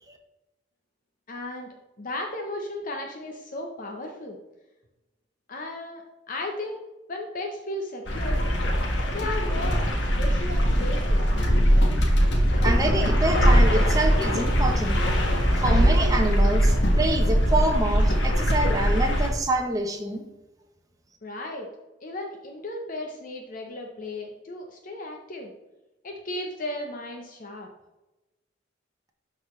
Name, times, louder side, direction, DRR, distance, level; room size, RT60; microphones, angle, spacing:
voice 1, 1.3-4.4 5.5-6.8 7.1-8.4 9.1-11.2 21.2-21.7 22.0-25.5 26.0-27.7, left 1 dB, 45° left, 1 dB, 0.8 m, -35 dB
sound 1, 8.1-19.3, equal, 70° left, 1.5 m, -21 dB
voice 2, 12.6-15.0 15.6-20.2, right 1 dB, 20° right, 3 dB, 0.8 m, -26 dB
12.0 x 4.0 x 3.1 m, 1.0 s
head